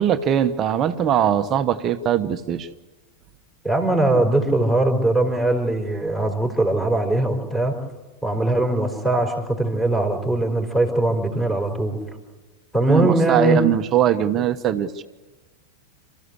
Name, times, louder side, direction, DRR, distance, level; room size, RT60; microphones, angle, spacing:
voice 1, 0.0-2.7 12.9-15.0, right 10 dB, 30° right, 9 dB, 1.1 m, -21 dB
voice 2, 3.6-7.7 8.2-12.0 12.7-13.6, right 2 dB, 5° left, 2 dB, 4.6 m, -21 dB
28.0 x 14.5 x 8.3 m, 1.2 s
figure-of-eight pair, 90°, 0 cm